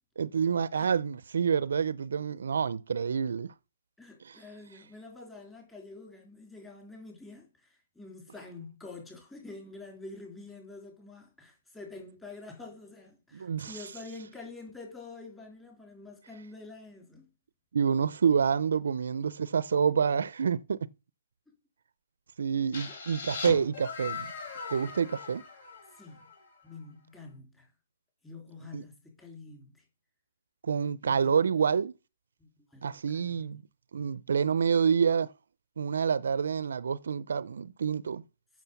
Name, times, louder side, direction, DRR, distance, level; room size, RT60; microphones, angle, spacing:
voice 1, 0.2-3.5 4.2-4.4 13.3-13.8 17.7-20.9 22.4-24.3 24.7-25.4 28.7-28.8 30.6-31.9 32.8-33.6 33.9-35.3 35.8-38.2, right 6 dB, 65° right, 0.5 m, -28 dB
voice 2, 4.0-17.3 21.5-21.6 22.8-23.0 25.9-26.3 26.6-27.7 28.2-29.8 31.0-31.4 32.4-33.5, left 3 dB, 10° left, 3.6 m, -47 dB
sound 1, 22.7-26.5, left 4 dB, 55° left, 4.6 m, -39 dB
8.2 x 6.1 x 7.1 m
hypercardioid pair, 160°, 0 cm